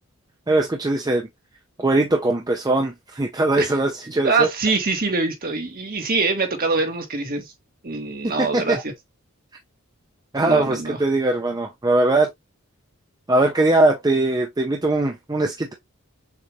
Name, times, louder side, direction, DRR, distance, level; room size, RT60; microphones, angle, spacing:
voice 1, 0.5-1.3 1.8-4.5 8.2-8.8 10.3-12.3 13.3-15.7, right 2 dB, 20° right, 0.6 m, -21 dB
voice 2, 4.2-7.4 7.8-8.8 10.4-11.0, right 3 dB, 45° right, 1.4 m, -24 dB
6.6 x 2.5 x 3.1 m
head